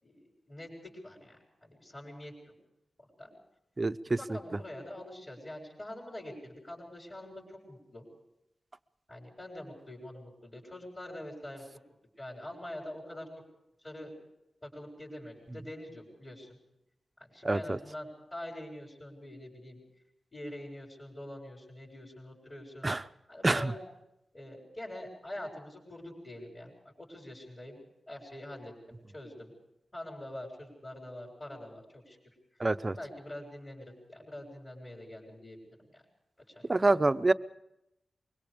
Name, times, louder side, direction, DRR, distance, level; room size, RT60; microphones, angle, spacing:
voice 1, 0.0-2.5 3.0-3.3 4.1-8.1 9.1-11.6 12.2-13.3 13.8-14.1 14.6-16.6 17.2-19.8 20.3-22.9 23.3-23.8 24.3-26.7 27.0-27.8 28.1-29.5 29.9-32.2 32.8-35.6 35.9-36.0 36.5-37.0, left 1 dB, 25° left, -6 dB, 6.9 m, -45 dB
voice 2, 17.4-17.8 22.8-23.0 23.4-23.7 32.6-32.9 36.7-37.3, right 2 dB, 25° right, 13 dB, 0.7 m, -26 dB
24.5 x 23.0 x 5.1 m, 0.86 s
wide cardioid pair, 110°, 0 cm